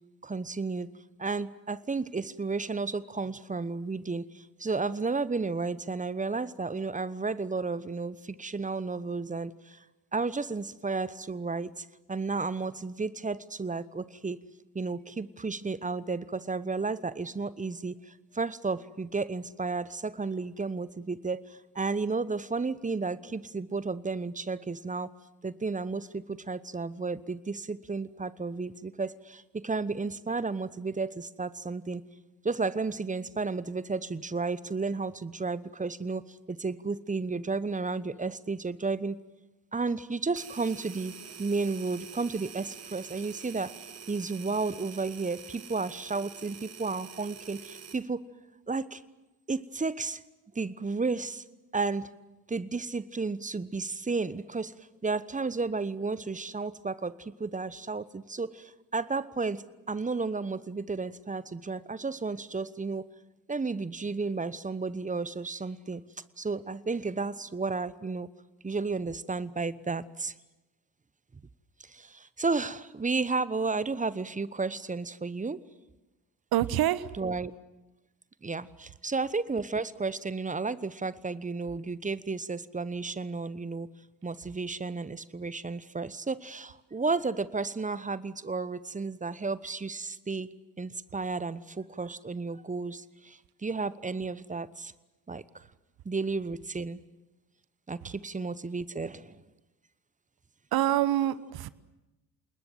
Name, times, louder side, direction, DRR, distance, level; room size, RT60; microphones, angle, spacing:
voice 1, 0.2-0.9 1.2-9.8 10.1-14.4 14.7-25.1 25.4-32.0 32.4-39.2 39.7-41.1 41.4-43.7 44.1-48.2 48.7-49.0 49.5-50.2 50.5-51.4 51.7-52.1 52.5-63.1 63.5-66.0 66.4-68.3 68.6-70.3 71.8-75.6 77.2-77.5 78.4-83.9 84.2-90.5 90.8-94.9 95.3-95.7 96.0-97.0 97.9-99.4, right 4 dB, 15° right, 17 dB, 1.1 m, -33 dB
sound 1, 40.4-48.1, right 7 dB, 30° right, 1.7 m, -46 dB
voice 2, 76.5-77.1 100.7-101.7, right 13 dB, 45° right, 17 dB, 1.1 m, -26 dB
27.0 x 20.5 x 7.7 m, 1.0 s
figure-of-eight pair, 50°, 49 cm